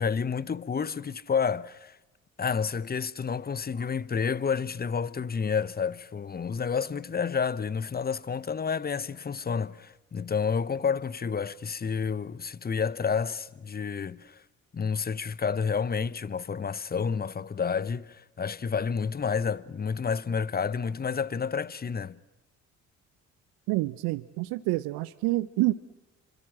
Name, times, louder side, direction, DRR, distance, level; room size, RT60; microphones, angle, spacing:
voice 1, 0.0-2.0 2.4-14.4 14.7-22.1, left 6 dB, 25° left, 1.0 m, -30 dB
voice 2, 23.7-25.7, right 19 dB, 65° right, 0.9 m, -27 dB
30.0 x 25.0 x 7.6 m
hypercardioid pair, 50°, 38 cm